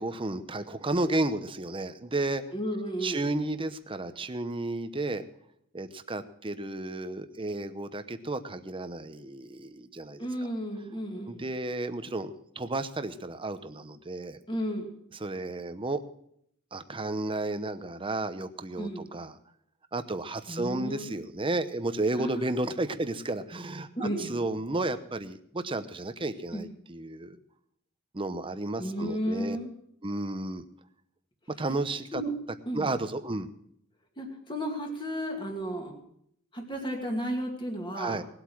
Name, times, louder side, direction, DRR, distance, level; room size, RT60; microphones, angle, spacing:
voice 1, 0.0-2.4 3.0-5.2 5.7-10.5 11.3-12.3 12.6-14.4 15.2-16.0 16.7-19.4 19.9-27.4 28.1-29.6 30.0-30.6 31.6-32.2 32.7-33.5 37.9-38.2, right 2 dB, 25° right, 10 dB, 0.9 m, -32 dB
voice 2, 2.5-3.3 10.2-11.4 14.5-14.9 18.8-19.1 20.5-21.2 22.2-22.5 24.0-24.4 26.5-26.7 28.8-29.7 32.1-32.3 32.7-32.9 34.2-35.9 36.5-38.2, equal, 25° left, 2 dB, 2.5 m, -33 dB
19.0 x 8.4 x 6.2 m, 0.70 s
head